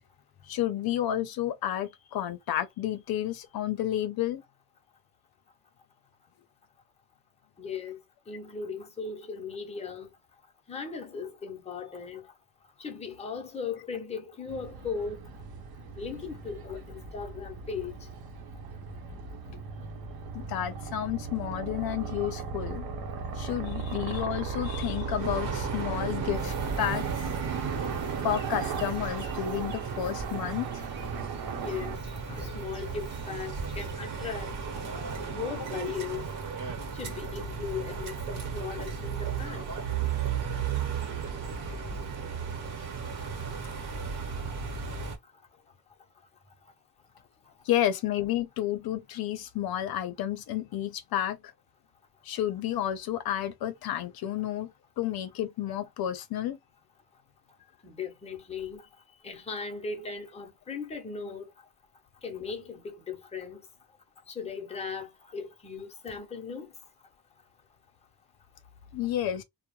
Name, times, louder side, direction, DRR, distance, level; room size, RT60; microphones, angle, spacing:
voice 1, 0.4-4.4 20.3-22.8 23.4-27.3 28.2-30.8 47.6-51.4 52.2-54.7 55.0-56.6 68.9-69.4, left 11 dB, 80° left, 0.5 m, -31 dB
voice 2, 7.6-8.0 8.3-10.1 10.7-12.3 12.8-15.2 16.0-17.9 31.6-32.0 32.3-34.6 35.3-36.3 36.9-39.6 57.8-58.9 59.2-61.4 62.2-63.6 64.3-66.7, left 5 dB, 20° left, 0.5 m, -37 dB
sound 1, 14.5-32.0, right 5 dB, 85° right, 0.8 m, -37 dB
sound 2, 25.2-45.2, right 6 dB, 60° right, 0.9 m, -35 dB
sound 3, 26.3-33.9, right 1 dB, 30° right, 0.7 m, -44 dB
2.2 x 2.0 x 2.9 m
wide cardioid pair, 175°, 36 cm